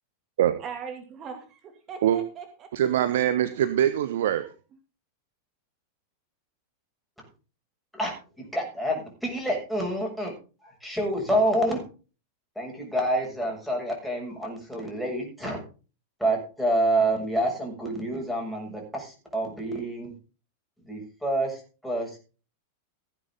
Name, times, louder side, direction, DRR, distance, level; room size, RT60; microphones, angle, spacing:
voice 1, 0.6-1.6 1.9-3.0 3.8-3.9, right 6 dB, 30° right, 5 dB, 2.4 m, -40 dB
voice 2, 2.7-4.5, right 11 dB, 60° right, 12 dB, 0.9 m, -23 dB
voice 3, 7.9-10.3 10.6-11.8 12.6-15.6 16.2-20.1 20.8-22.2, right 1 dB, ahead, -1 dB, 7.0 m, -28 dB
16.0 x 10.0 x 3.8 m, 0.34 s
figure-of-eight pair, 90°, 0 cm